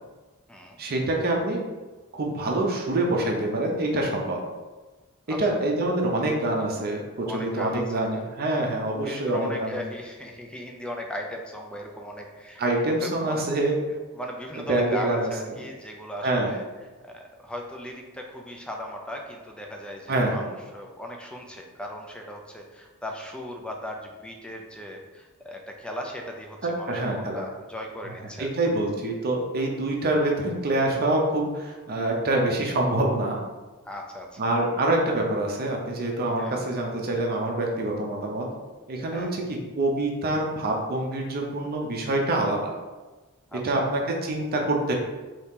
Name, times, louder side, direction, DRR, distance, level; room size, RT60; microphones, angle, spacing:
voice 1, 0.8-1.6 2.1-4.4 5.4-9.8 12.6-13.8 14.7-15.3 16.2-16.5 20.1-20.4 26.6-27.4 28.4-33.4 34.4-38.5 38.9-42.7 43.5-44.9, right 1 dB, 45° right, 0 dB, 0.6 m, -26 dB
voice 2, 7.3-8.2 9.0-12.6 13.0-13.5 14.1-16.6 17.0-28.5 33.9-34.5 36.4-36.6 39.1-39.3 43.5-43.8, left 1 dB, 5° left, 1 dB, 0.3 m, -37 dB
2.8 x 2.7 x 3.5 m, 1.2 s
head